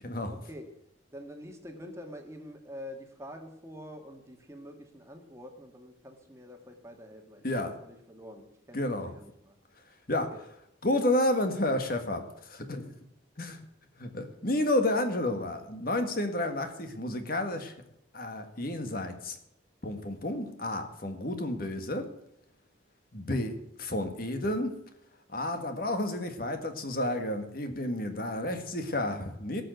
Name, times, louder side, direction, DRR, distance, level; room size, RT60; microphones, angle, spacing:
voice 1, 0.0-0.4 7.4-7.7 8.7-9.1 10.1-10.3 10.8-12.9 13.4-13.6 14.0-17.7 18.1-19.4 19.8-22.1 23.1-24.7 25.3-29.6, left 1 dB, 45° left, 6 dB, 1.8 m, -31 dB
voice 2, 1.1-9.6 10.3-10.4, equal, 15° right, 4 dB, 1.7 m, -46 dB
17.5 x 6.6 x 8.0 m, 0.81 s
head